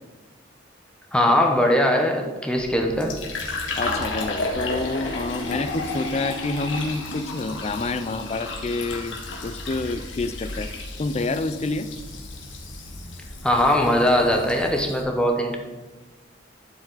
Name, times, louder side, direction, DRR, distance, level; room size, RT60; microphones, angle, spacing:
voice 1, 1.1-3.2 13.4-15.6, left 1 dB, 5° left, 1 dB, 0.8 m, -20 dB
Fill (with liquid), 2.6-15.0, left 2 dB, 80° left, 1.5 m, -33 dB
voice 2, 3.8-10.7 11.0-11.9, left 3 dB, 35° left, 11 dB, 0.4 m, -28 dB
11.5 x 4.8 x 4.0 m, 1.2 s
head